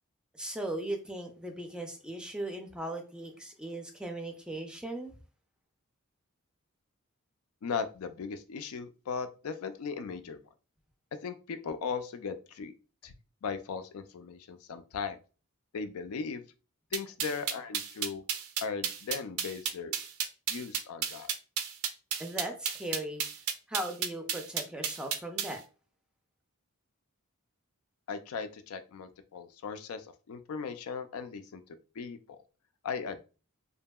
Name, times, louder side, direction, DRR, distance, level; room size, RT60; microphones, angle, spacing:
voice 1, 0.3-5.2 22.2-23.3 23.7-25.6, right 1 dB, 5° right, 4 dB, 0.4 m, -38 dB
voice 2, 7.6-10.4 11.2-12.7 13.0-13.1 13.4-15.2 15.7-16.4 16.9-18.2 18.6-20.0 20.5-21.3 28.1-31.6 32.0-32.2 32.8-33.2, left 5 dB, 75° left, 10 dB, 0.4 m, -37 dB
sound 1, 16.9-25.6, right 8 dB, 75° right, 0.4 m, -32 dB
2.7 x 2.5 x 2.2 m, 0.34 s
head